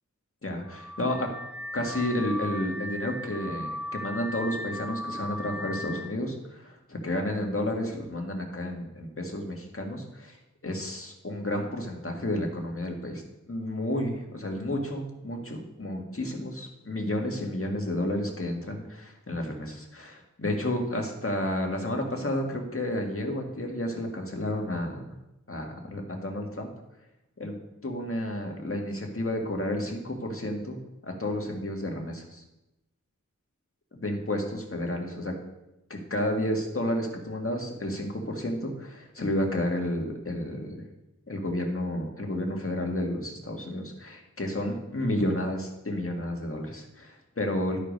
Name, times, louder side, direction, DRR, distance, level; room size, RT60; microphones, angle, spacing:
voice 1, 0.4-1.3 1.7-10.4 10.6-25.0 25.5-26.7 27.4-27.6 27.8-30.8 31.0-32.4 33.9-35.3 35.9-40.8 41.3-47.8, left 1 dB, 45° left, 1 dB, 1.8 m, -31 dB
Car / Alarm, 0.7-6.1, left 1 dB, 5° right, 0.4 m, -37 dB
11.5 x 5.2 x 5.2 m, 0.92 s
wide cardioid pair, 60°, 31 cm